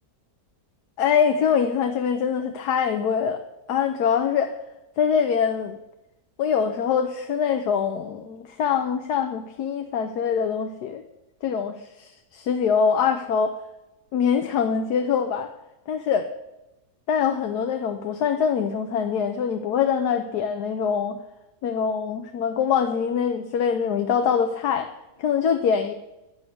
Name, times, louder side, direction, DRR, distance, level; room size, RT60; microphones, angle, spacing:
voice 1, 1.0-3.4 3.7-4.5 5.0-5.8 6.4-11.0 11.4-13.6 14.1-15.5 15.9-16.3 17.1-21.2 21.6-24.9 25.2-25.9, left 7 dB, 85° left, 6 dB, 1.4 m, -24 dB
10.0 x 6.4 x 8.5 m, 0.96 s
omnidirectional pair, 1.6 m